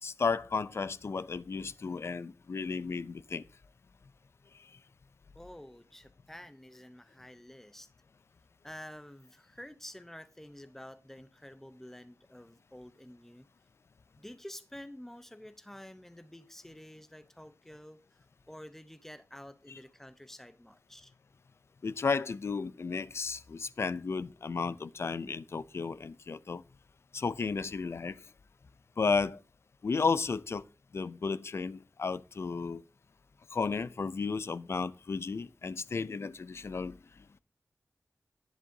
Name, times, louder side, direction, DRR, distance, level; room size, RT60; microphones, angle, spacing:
voice 1, 0.0-3.4 21.8-26.6 27.1-28.2 29.0-29.4 29.8-30.6 30.9-32.8 33.5-36.9, left 4 dB, 55° left, 0.4 m, -33 dB
voice 2, 5.3-7.9 8.6-13.5 14.2-21.1, left 1 dB, 5° left, 0.7 m, -49 dB
11.0 x 10.5 x 2.7 m
wide cardioid pair, 110°, 5 cm